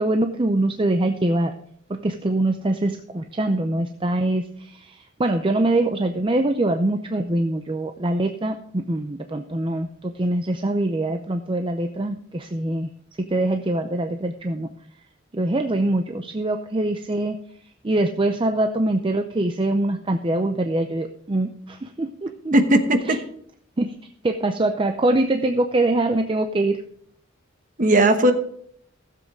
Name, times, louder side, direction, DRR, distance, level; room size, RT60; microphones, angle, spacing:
voice 1, 0.0-1.5 1.9-12.9 13.2-14.7 15.3-17.4 17.8-22.6 23.1-23.2 23.8-23.9 24.2-26.8, right 2 dB, 25° right, 6 dB, 0.5 m, -23 dB
voice 2, 22.5-23.2 27.8-28.3, right 1 dB, 40° right, 7 dB, 1.2 m, -17 dB
15.0 x 7.7 x 3.7 m, 0.64 s
head